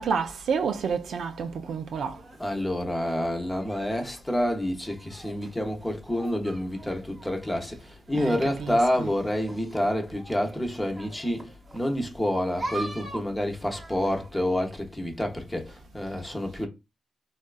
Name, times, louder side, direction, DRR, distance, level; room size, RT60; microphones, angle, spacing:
voice 1, 0.0-2.2 8.1-9.1, right 6 dB, 80° right, 0.4 m, -29 dB
sound 1, 2.0-14.5, right 2 dB, 35° right, 0.9 m, -44 dB
voice 2, 2.4-16.7, left 1 dB, 10° left, 0.6 m, -28 dB
2.8 x 2.3 x 2.3 m
cardioid pair, 85°, 0 cm